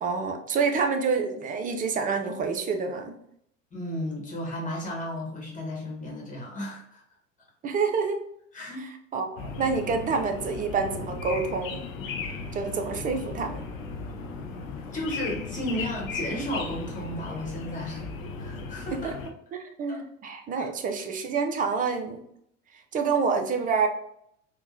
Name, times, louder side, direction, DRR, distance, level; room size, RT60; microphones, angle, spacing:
voice 1, 0.0-3.2 7.6-8.2 8.8-11.8 12.5-13.6 18.9-19.1 19.6-22.2 22.9-23.9, right 5 dB, 20° right, 5 dB, 0.4 m, -27 dB
voice 2, 3.7-7.0 8.5-8.9 12.3-12.4 12.9-13.1 14.9-18.0 18.4-19.1 19.9-20.0 20.6-20.7, equal, 20° left, -2 dB, 1.3 m, -34 dB
sound 1, 9.4-19.3, left 4 dB, 80° left, 0.6 m, -36 dB
3.7 x 2.1 x 2.6 m, 0.72 s
figure-of-eight pair, 75°, 39 cm